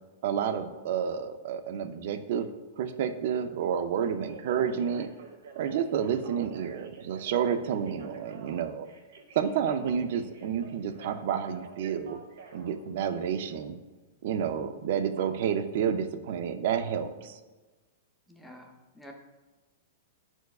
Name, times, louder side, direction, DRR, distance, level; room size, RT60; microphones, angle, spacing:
voice 1, 0.2-2.5 2.8-5.1 5.6-8.9 9.3-12.2 12.5-13.8 14.2-17.4, right 8 dB, 55° right, 9 dB, 0.5 m, -30 dB
Telephone, 4.0-13.6 15.2-15.3, right 5 dB, 80° right, 1.2 m, -49 dB
voice 2, 18.3-19.1, equal, ahead, 1 dB, 0.6 m, -49 dB
9.1 x 4.5 x 2.3 m, 1.2 s
supercardioid pair, 160°, 0 cm